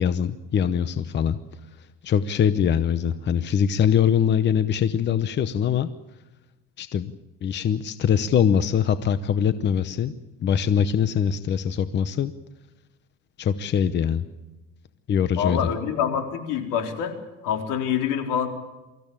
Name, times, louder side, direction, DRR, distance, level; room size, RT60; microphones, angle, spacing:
voice 1, 0.0-1.4 1.8-5.9 6.8-7.1 7.4-10.1 10.4-12.3 13.4-14.3 15.1-15.6, left 8 dB, 35° left, 12 dB, 0.9 m, -23 dB
voice 2, 15.3-17.2 17.4-18.5, left 8 dB, 75° left, 5 dB, 4.0 m, -26 dB
24.5 x 15.0 x 8.9 m, 1.1 s
cardioid pair, 145°, 31 cm